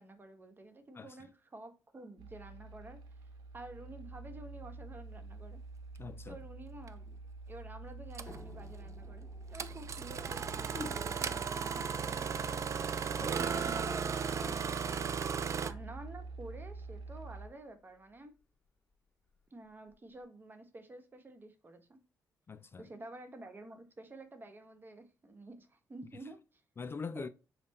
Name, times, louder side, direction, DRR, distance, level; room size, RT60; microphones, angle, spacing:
voice 1, 0.0-3.0 3.5-5.6 6.3-7.2 7.5-12.6 13.5-15.1 15.6-18.3 19.5-22.0 22.8-26.6 27.1-27.3, right 2 dB, 30° right, 1.0 m, -50 dB
sound 1, 2.2-17.5, right 3 dB, 90° right, 0.8 m, -46 dB
voice 2, 6.0-6.4 10.7-11.0 13.2-13.6 22.5-22.9 26.8-27.3, left 5 dB, 35° left, 0.3 m, -43 dB
Engine starting, 6.9-7.0 8.1-8.4 9.5-15.7, right 6 dB, 45° right, 0.4 m, -36 dB
sound 2, 8.3-13.5 14.4-18.4 19.3-19.4 19.9-20.0, left 2 dB, 15° left, 1.8 m, -58 dB
5.5 x 2.2 x 4.1 m
cardioid pair, 90°, 7 cm